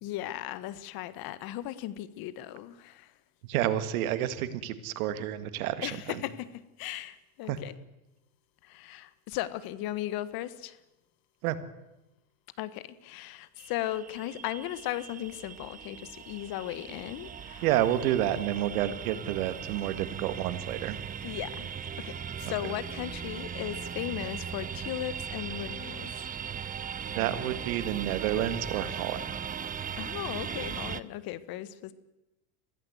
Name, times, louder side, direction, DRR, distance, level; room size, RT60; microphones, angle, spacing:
voice 1, 0.0-3.1 5.8-6.5 6.8-7.7 8.6-10.8 12.6-17.6 21.2-21.7 22.0-26.1 30.0-31.9, left 14 dB, 55° left, 1.5 m, -37 dB
voice 2, 3.5-6.2 7.4-7.6 11.4-11.6 17.6-21.0 27.2-29.2, right 12 dB, 75° right, 1.9 m, -29 dB
sound 1, 13.6-31.0, right 8 dB, 20° right, 0.7 m, -38 dB
22.0 x 15.5 x 8.0 m
hypercardioid pair, 100°, 43 cm